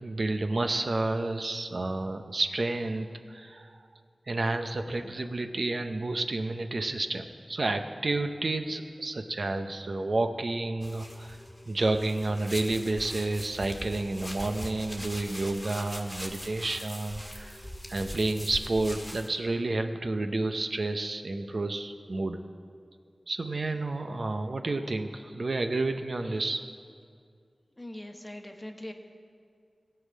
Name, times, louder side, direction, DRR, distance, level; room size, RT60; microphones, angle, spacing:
voice 1, 0.0-3.8 4.3-11.4 11.7-17.6 17.9-22.4 23.3-26.7, right 2 dB, 70° right, 6 dB, 0.7 m, -30 dB
sound 1, 10.8-19.3, equal, 5° left, 1.8 m, -41 dB
voice 2, 27.8-28.9, left 1 dB, 25° left, 4 dB, 1.2 m, -41 dB
16.5 x 5.7 x 8.4 m, 2.2 s
wide cardioid pair, 50°, 0 cm